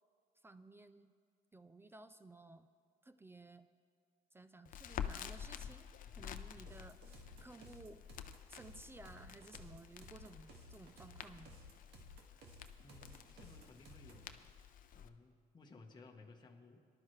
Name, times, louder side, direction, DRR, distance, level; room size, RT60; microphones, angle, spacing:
voice 1, 0.4-1.1 1.5-2.7 3.0-3.7 4.3-5.9 6.2-8.1 8.5-11.5, right 2 dB, 15° right, 11 dB, 0.4 m, -56 dB
Crackle, 4.7-15.1, left 9 dB, 55° left, 0.6 m, -50 dB
sound 1, 6.7-14.3, equal, 75° right, 1.9 m, -58 dB
voice 2, 12.8-14.5 14.9-16.8, left 3 dB, 25° left, 2 dB, 1.1 m, -59 dB
19.0 x 11.5 x 3.2 m, 2.2 s
cardioid pair, 110°, 17 cm